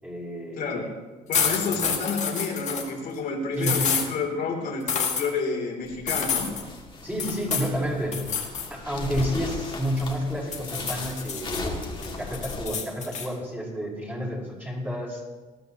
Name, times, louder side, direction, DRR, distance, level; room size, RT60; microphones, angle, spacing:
voice 1, 0.0-0.9 1.7-1.8 3.5-3.8 7.0-15.2, equal, 10° right, -4 dB, 5.1 m, -30 dB
voice 2, 0.6-0.9 1.3-6.5, left 4 dB, 60° left, 1 dB, 3.2 m, -29 dB
sound 1, 1.3-2.9 3.6-4.1 4.9-5.3 6.1-6.6 7.2-7.7 8.1-8.7 9.0-10.1 10.5-11.6 12.0-13.3, left 6 dB, 45° left, 2.1 m, -28 dB
sound 2, 5.8-12.7, left 3 dB, 30° left, 2.4 m, -37 dB
19.5 x 12.5 x 3.0 m, 1.3 s
cardioid pair, 110°, 17 cm